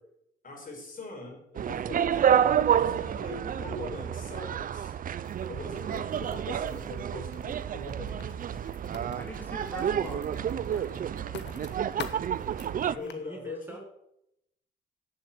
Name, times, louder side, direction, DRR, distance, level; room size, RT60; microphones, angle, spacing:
voice 1, 0.4-2.2 2.7-4.9 5.5-8.3 12.9-13.8, left 3 dB, 45° left, 1 dB, 4.5 m, -41 dB
sound 1, 1.6-13.0, right 9 dB, 45° right, 0.5 m, -29 dB
Writing, 5.2-13.1, left 7 dB, 60° left, 1.3 m, -48 dB
voice 2, 9.1-11.4, left 1 dB, 10° left, 0 dB, 2.8 m, -45 dB
voice 3, 12.9-13.8, right 1 dB, 10° right, 1 dB, 1.8 m, -46 dB
8.6 x 7.6 x 8.2 m, 0.81 s
cardioid pair, 90°, 20 cm